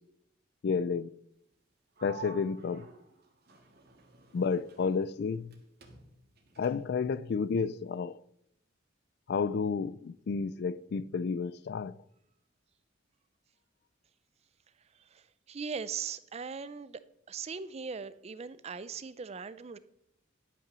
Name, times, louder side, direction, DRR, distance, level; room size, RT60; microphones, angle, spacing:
voice 1, 0.6-1.1 2.0-2.9 4.3-5.5 6.6-8.2 9.3-11.9, left 5 dB, 55° left, 0.3 m, -31 dB
Sliding door, 2.0-5.6 5.8-7.1, right 4 dB, 55° right, 1.6 m, -51 dB
voice 2, 15.5-17.0 17.3-19.8, right 5 dB, 30° right, 0.4 m, -39 dB
11.0 x 5.8 x 6.1 m
head